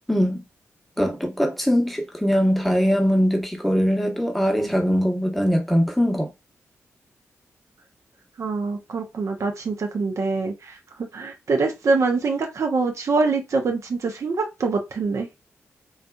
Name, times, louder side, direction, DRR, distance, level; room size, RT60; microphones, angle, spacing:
voice 1, 0.1-0.4 1.0-6.3, equal, ahead, 0.9 m, -21 dB
voice 2, 8.4-15.3, right 4 dB, 60° right, 0.6 m, -24 dB
2.6 x 2.2 x 2.3 m
supercardioid pair, 40°, 6 cm